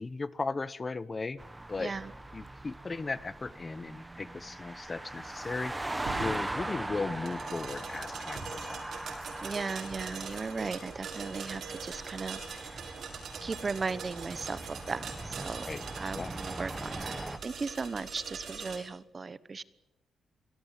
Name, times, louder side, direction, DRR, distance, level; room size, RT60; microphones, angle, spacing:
voice 1, 0.0-1.4 1.7-1.9 2.3-5.7 6.2-8.8 15.6-15.8 16.1-16.3, left 3 dB, 25° left, 17 dB, 0.9 m, -36 dB
sound 1, 1.4-17.4, right 1 dB, 10° right, 1.5 m, -41 dB
voice 2, 1.8-2.1 9.4-12.8 13.4-15.7 16.0-19.6, right 4 dB, 30° right, 17 dB, 1.1 m, -37 dB
sound 2, 6.0-18.8, right 5 dB, 65° right, 7.0 m, -43 dB
27.0 x 18.0 x 9.1 m, 0.96 s
cardioid pair, 115°, 0 cm